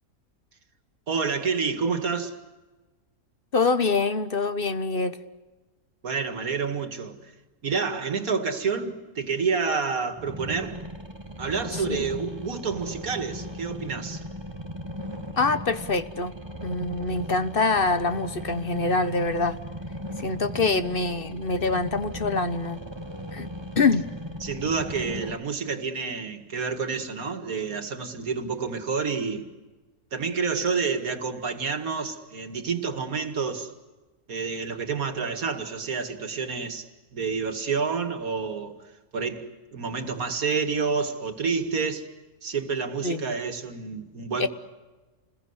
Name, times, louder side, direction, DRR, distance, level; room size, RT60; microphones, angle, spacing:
voice 1, 1.1-2.4 6.0-7.2 7.6-10.8 11.4-14.2 24.4-29.5 30.1-33.7 34.3-38.8 39.1-42.1 42.4-44.5, right 5 dB, 80° right, 2.4 m, -29 dB
voice 2, 3.5-5.2 11.7-12.0 15.4-16.3 16.6-19.6 20.2-22.8 23.3-23.5 23.8-24.1 43.0-43.3 44.4-44.5, left 3 dB, 40° left, 1.2 m, -25 dB
sound 1, 10.2-25.4, equal, 20° right, 1.6 m, -37 dB
29.5 x 21.5 x 8.1 m
omnidirectional pair, 1.5 m